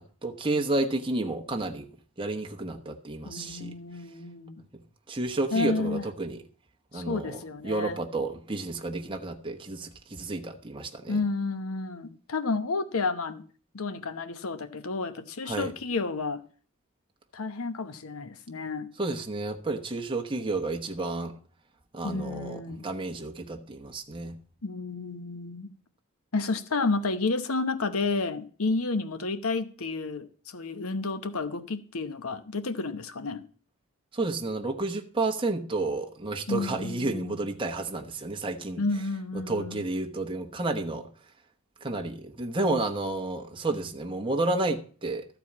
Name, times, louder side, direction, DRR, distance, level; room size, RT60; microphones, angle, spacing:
voice 1, 0.0-1.9 2.2-3.7 4.7-4.8 5.1-6.4 6.9-11.2 15.5-15.7 19.0-21.4 21.9-24.4 34.1-38.8 39.3-41.1 41.8-45.3, right 2 dB, 25° right, 1.1 m, -31 dB
voice 2, 3.2-4.6 5.5-6.0 6.9-8.0 11.1-13.4 13.7-16.4 17.3-18.9 22.0-22.9 24.6-25.7 26.3-33.4 36.5-37.4 38.8-39.8, left 3 dB, 80° left, 0.9 m, -31 dB
13.5 x 4.7 x 8.5 m
head